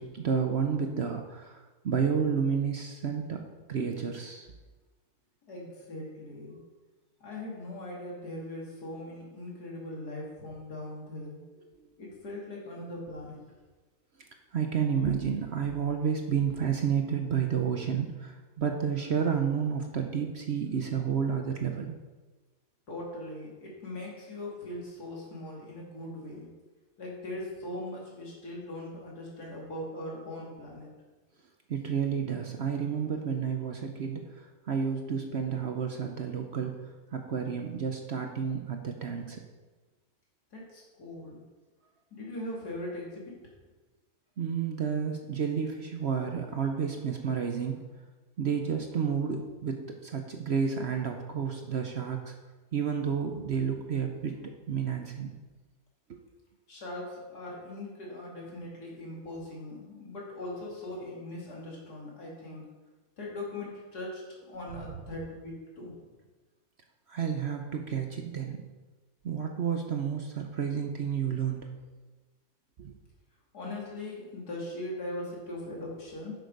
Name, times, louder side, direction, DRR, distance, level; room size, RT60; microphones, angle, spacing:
voice 1, 0.0-3.4 3.7-4.5 14.5-22.0 31.7-34.3 34.7-36.8 37.1-39.4 44.4-47.9 48.4-52.3 52.7-55.3 56.1-56.2 67.1-68.6 69.2-71.7 72.8-72.9, right 7 dB, 55° right, 4 dB, 0.8 m, -30 dB
voice 2, 5.5-6.6 7.2-11.4 12.0-13.4 22.9-26.5 27.0-30.9 40.5-41.4 42.1-43.4 56.7-62.6 63.2-66.0 73.5-76.3, left 1 dB, 75° left, -3 dB, 2.8 m, -40 dB
7.9 x 6.6 x 5.2 m, 1.2 s
omnidirectional pair, 1.7 m